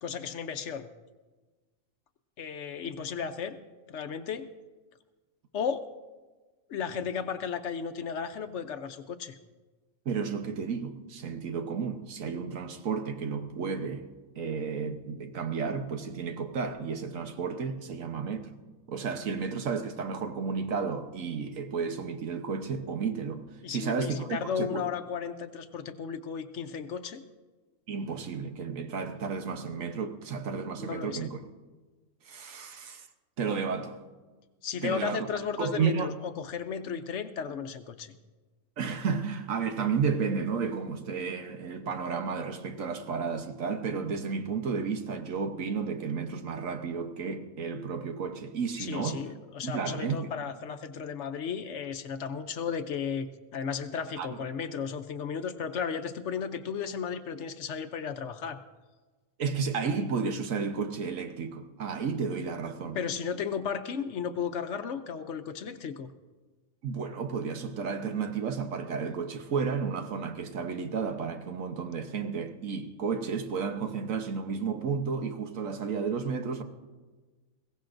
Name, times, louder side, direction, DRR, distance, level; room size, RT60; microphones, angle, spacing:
voice 1, 0.0-0.9 2.4-3.6 3.9-4.4 5.5-5.8 6.7-9.4 23.6-27.2 30.8-31.3 34.6-38.1 48.8-53.3 53.5-58.6 62.9-66.1, left 6 dB, 65° left, 1.0 m, -34 dB
voice 2, 10.0-14.1 14.4-18.5 18.9-23.4 23.7-24.9 27.9-31.4 32.3-33.1 33.4-34.0 34.8-35.3 35.6-36.1 38.8-49.3 49.6-50.3 54.2-54.4 59.4-63.0 66.8-76.6, right 5 dB, 75° right, 1.4 m, -32 dB
21.5 x 16.5 x 2.6 m
omnidirectional pair, 1.4 m